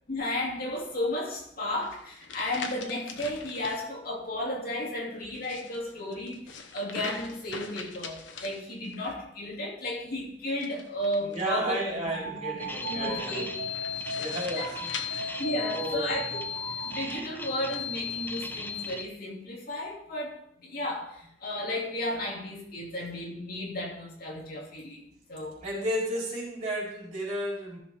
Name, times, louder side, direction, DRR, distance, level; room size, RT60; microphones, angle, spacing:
voice 1, 0.1-6.4 6.7-11.8 12.2-12.3 12.9-13.5 15.2-16.2 16.9-20.4 20.6-21.1 21.4-25.0 25.3-25.6, left 1 dB, 55° left, -2 dB, 2.5 m, -33 dB
sound 1, 1.8-3.8 5.2-9.1 10.5-11.8 13.7-16.1 16.8-17.9, left 5 dB, 90° left, 1.0 m, -43 dB
voice 2, 11.2-13.4 13.9-15.4 15.7-16.2 25.6-27.8, right 1 dB, 40° right, -5 dB, 4.2 m, -33 dB
sound 2, 12.0-17.4, right 3 dB, 70° right, 1.2 m, -39 dB
sound 3, 12.6-19.0, left 6 dB, 10° left, 0.7 m, -36 dB
14.0 x 6.6 x 3.5 m, 0.69 s
head